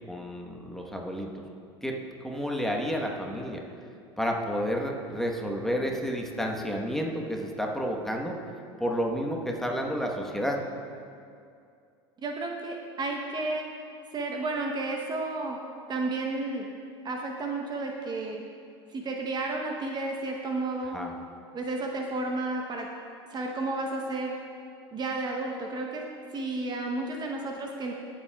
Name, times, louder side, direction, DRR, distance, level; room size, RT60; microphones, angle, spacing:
voice 1, 0.1-1.4 1.8-1.9 2.2-3.6 4.2-8.3 8.8-10.6 20.9-21.1, equal, ahead, 0 dB, 1.1 m, -30 dB
voice 2, 12.2-13.7 14.1-15.6 15.9-16.7 17.0-18.4 18.9-21.0 21.5-22.9 23.3-24.4 24.9-26.1 26.3-27.9, right 2 dB, 30° right, 1 dB, 0.9 m, -32 dB
22.0 x 7.5 x 2.3 m, 2.4 s
supercardioid pair, 100°, 14 cm